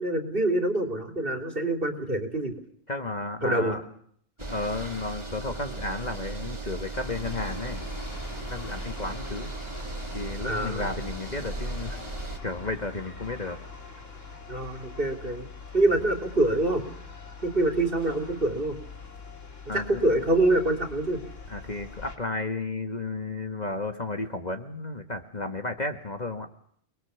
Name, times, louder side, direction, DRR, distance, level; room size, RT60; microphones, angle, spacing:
voice 1, 0.0-2.5 3.4-3.8 10.4-10.9 14.5-15.5 15.7-16.8 17.4-18.8 19.7-21.2, right 2 dB, 45° right, 7 dB, 3.4 m, -25 dB
voice 2, 2.9-3.8 4.5-7.8 8.5-9.5 10.1-12.0 12.4-13.6 19.7-20.0 21.5-26.5, left 2 dB, 35° left, 5 dB, 1.7 m, -33 dB
sound 1, 4.4-12.4, right 2 dB, 25° right, 2.1 m, -37 dB
sound 2, 6.9-22.2, left 4 dB, 80° left, 3.6 m, -43 dB
28.5 x 21.0 x 7.1 m, 0.64 s
omnidirectional pair, 1.3 m